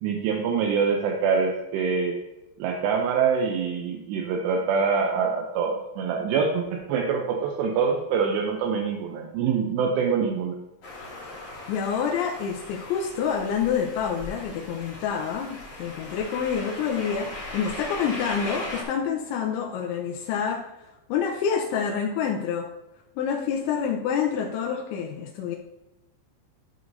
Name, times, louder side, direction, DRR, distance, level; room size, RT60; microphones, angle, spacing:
voice 1, 0.0-2.2 2.6-10.6, right 6 dB, 80° right, 1 dB, 2.6 m, -25 dB
sound 1, 10.8-18.8, left 2 dB, 50° left, 1.5 m, -38 dB
voice 2, 11.7-20.6 21.1-22.7 23.2-25.6, left 7 dB, 85° left, 1 dB, 3.0 m, -27 dB
12.5 x 6.3 x 2.7 m, 0.94 s
omnidirectional pair, 5.5 m